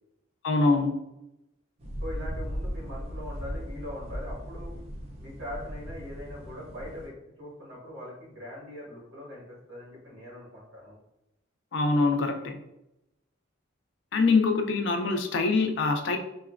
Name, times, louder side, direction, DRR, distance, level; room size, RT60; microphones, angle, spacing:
voice 1, 0.4-1.0 11.7-12.6 14.1-16.2, left 3 dB, 60° left, 5 dB, 0.4 m, -24 dB
sound 1, 1.8-7.1, equal, 30° right, 0.4 m, -37 dB
voice 2, 2.0-4.8 5.2-11.0, left 1 dB, 75° right, -5 dB, 1.4 m, -41 dB
3.7 x 2.1 x 2.4 m, 0.88 s
head